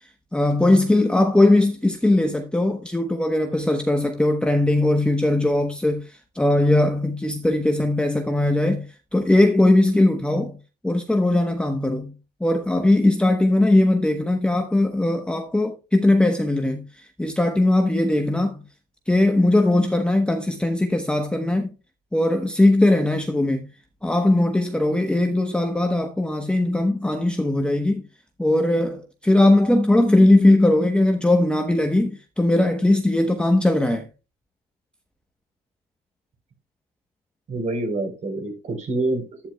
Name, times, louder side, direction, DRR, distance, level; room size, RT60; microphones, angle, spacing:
voice 1, 0.3-8.9 9.1-10.6 10.8-12.1 12.4-18.6 19.1-21.7 22.1-23.7 24.0-28.0 28.4-34.1, left 1 dB, 5° left, 0.9 m, -19 dB
voice 2, 37.5-39.5, right 2 dB, 45° right, 4.0 m, -27 dB
11.5 x 9.7 x 2.2 m
cardioid pair, 110°, 17 cm